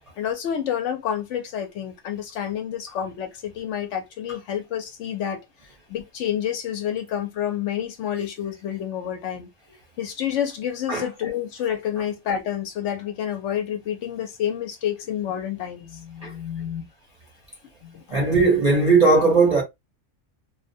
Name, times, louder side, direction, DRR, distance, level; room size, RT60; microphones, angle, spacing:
voice 1, 0.2-5.4 5.9-9.5 10.0-16.9 17.8-18.0, left 9 dB, 70° left, 0.8 m, -29 dB
voice 2, 18.1-19.6, right 3 dB, 45° right, 0.5 m, -18 dB
2.3 x 2.1 x 2.5 m
omnidirectional pair, 1.4 m